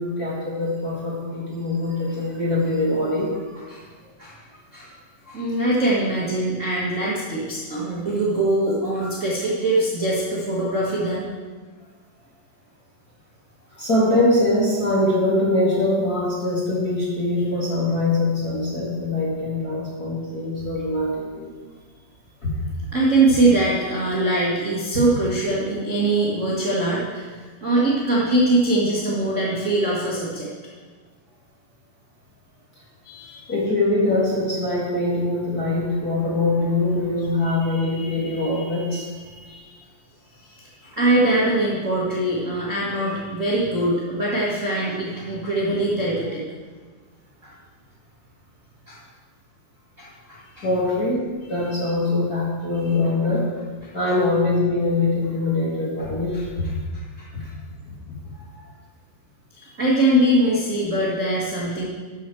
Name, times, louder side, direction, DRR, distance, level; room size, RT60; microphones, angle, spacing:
voice 1, 0.0-3.6 5.3-5.5 9.0-9.1 13.7-21.5 22.4-22.5 33.5-39.6 50.6-53.4 53.9-56.7 57.3-57.5 57.9-58.0 58.3-58.6, left 2 dB, 35° left, -6 dB, 1.5 m, -23 dB
voice 2, 5.3-11.3 22.9-30.5 33.0-33.5 39.5-39.7 40.4-46.4 47.4-47.5 48.9-49.0 50.0-50.6 56.9-57.3 59.6-61.9, right 1 dB, 70° right, -7 dB, 0.7 m, -22 dB
12.5 x 7.1 x 4.5 m, 1.4 s
omnidirectional pair, 4.4 m